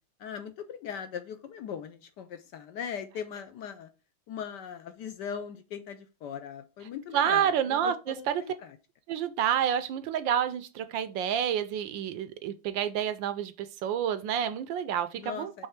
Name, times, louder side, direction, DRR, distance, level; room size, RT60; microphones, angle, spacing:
voice 1, 0.2-3.9 4.3-8.8 15.2-15.7, left 8 dB, 70° left, 1.1 m, -39 dB
voice 2, 7.1-8.4 9.1-15.7, right 9 dB, 75° right, 1.2 m, -29 dB
5.5 x 3.3 x 5.7 m
omnidirectional pair, 2.2 m